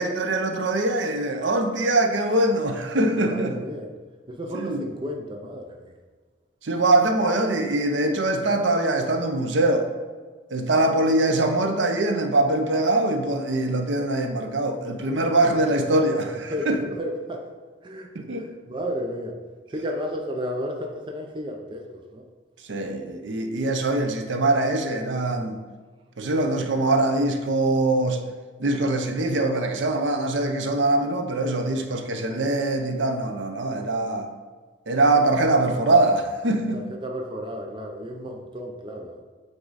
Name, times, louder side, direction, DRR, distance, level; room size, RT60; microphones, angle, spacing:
voice 1, 0.0-3.6 4.5-4.9 6.6-9.9 10.5-16.8 18.1-18.5 22.7-25.6 26.2-28.3 28.6-34.3 34.9-36.8, right 2 dB, 70° right, 5 dB, 0.6 m, -23 dB
voice 2, 3.3-4.0 4.3-6.0 15.2-15.3 16.5-17.4 17.8-19.4 19.7-22.2 36.7-39.2, equal, 25° right, 2 dB, 0.5 m, -33 dB
7.9 x 3.7 x 4.0 m, 1.4 s
head